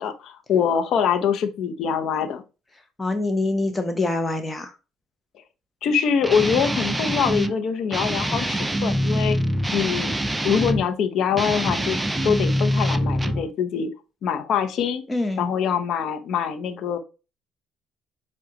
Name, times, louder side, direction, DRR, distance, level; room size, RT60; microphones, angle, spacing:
voice 1, 0.0-2.4 5.8-9.4 9.7-10.2 10.4-13.9 14.2-15.0 15.4-17.0, left 7 dB, 60° left, 0.8 m, -24 dB
voice 2, 3.0-4.7 15.1-15.4, left 2 dB, 20° left, 0.8 m, -25 dB
Guitar, 6.2-7.5 7.9-10.9 11.3-13.5, equal, 15° right, 0.5 m, -24 dB
7.2 x 2.4 x 3.0 m
hypercardioid pair, 65°, 0 cm